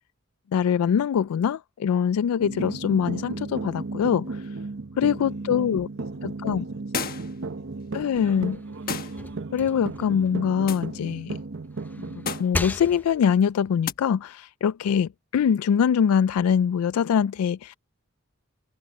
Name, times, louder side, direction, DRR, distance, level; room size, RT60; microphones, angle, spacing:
voice 1, 0.5-4.5 5.0-5.9 6.4-6.6 7.9-8.6 9.5-11.4 12.0-17.7, left 7 dB, 90° left, 0.3 m, -23 dB
sound 1, 2.4-12.4, right 3 dB, 60° right, 0.8 m, -34 dB
voice 2, 5.0-6.2 6.5-8.1, left 1 dB, 70° left, 3.4 m, -58 dB
sound 2, 6.9-7.4 8.9-9.2 10.7-10.9 12.2-12.6 13.8-14.0, left 7 dB, 45° left, 1.3 m, -32 dB
sound 3, 8.0-11.2 11.6-13.4, left 1 dB, 10° left, 0.5 m, -37 dB
head